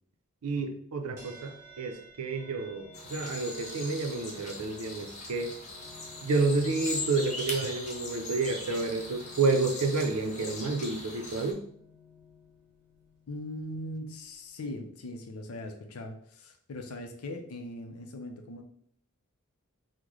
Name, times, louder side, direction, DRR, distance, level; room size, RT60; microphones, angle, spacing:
voice 1, 0.4-5.5 6.2-11.6, right 3 dB, 85° right, 5 dB, 0.5 m, -30 dB
sound 1, 1.2-14.7, left 1 dB, 15° right, 1.5 m, -54 dB
sound 2, 2.9-11.5, left 2 dB, 35° left, 0.6 m, -40 dB
voice 2, 13.3-18.6, left 1 dB, 80° left, 5 dB, 0.5 m, -40 dB
3.7 x 2.1 x 3.0 m, 0.64 s
head